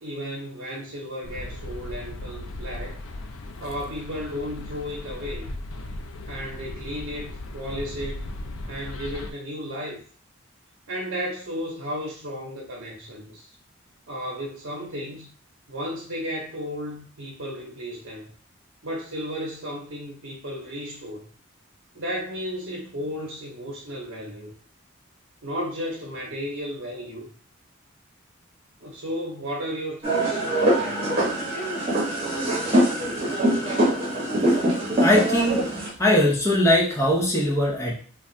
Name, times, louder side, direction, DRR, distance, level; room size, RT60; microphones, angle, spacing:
voice 1, 0.0-3.0 3.6-5.5 6.3-8.3 8.7-10.0 10.9-13.5 14.1-15.3 15.7-18.3 18.8-21.3 21.9-24.5 25.4-27.3 28.8-31.0, equal, 75° right, -2 dB, 0.7 m, -34 dB
sound 1, 1.2-9.3, left 2 dB, 80° left, 0.4 m, -37 dB
sound 2, 30.0-35.9, right 1 dB, 30° right, 1.0 m, -23 dB
voice 2, 35.0-35.7 36.0-37.9, left 1 dB, 15° left, -2 dB, 0.6 m, -20 dB
3.2 x 2.3 x 2.6 m, 0.43 s
head